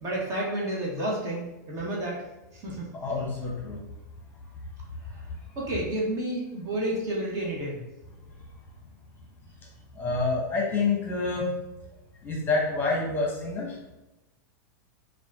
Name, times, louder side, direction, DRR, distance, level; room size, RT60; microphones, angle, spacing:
voice 1, 0.0-2.2 2.5-2.9 5.1-5.2 5.5-7.8, right 1 dB, 35° right, -3 dB, 1.4 m, -30 dB
voice 2, 2.9-3.8 9.9-11.5 12.2-13.8, left 3 dB, 20° left, -2 dB, 1.0 m, -27 dB
4.1 x 2.5 x 3.6 m, 0.98 s
hypercardioid pair, 120°, 10 cm